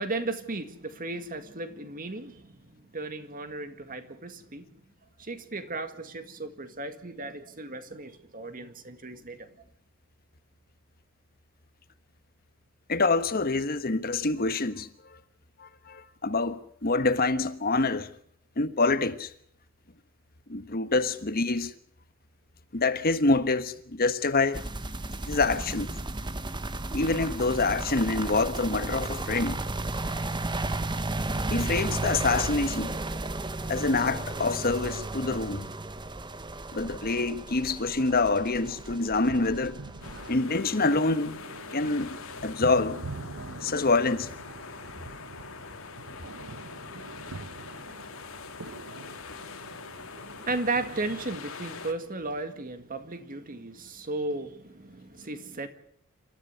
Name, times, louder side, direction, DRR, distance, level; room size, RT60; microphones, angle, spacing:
voice 1, 0.0-4.7 5.2-9.5 49.9-55.7, right 2 dB, 45° right, 2.0 m, -35 dB
voice 2, 12.9-14.9 15.6-18.1 18.6-19.3 20.5-21.7 22.7-24.6 25.3-25.9 26.9-29.6 31.5-32.9 33.7-35.7 36.7-39.8 40.3-41.4 41.7-43.0 43.6-44.3, left 3 dB, 45° left, 1.3 m, -26 dB
sound 1, 24.5-40.4, right 2 dB, 20° right, 1.1 m, -34 dB
sound 2, 37.9-51.4, right 3 dB, 85° right, 0.9 m, -45 dB
sound 3, 40.0-51.9, left 4 dB, 85° left, 2.4 m, -43 dB
27.5 x 13.5 x 8.1 m
head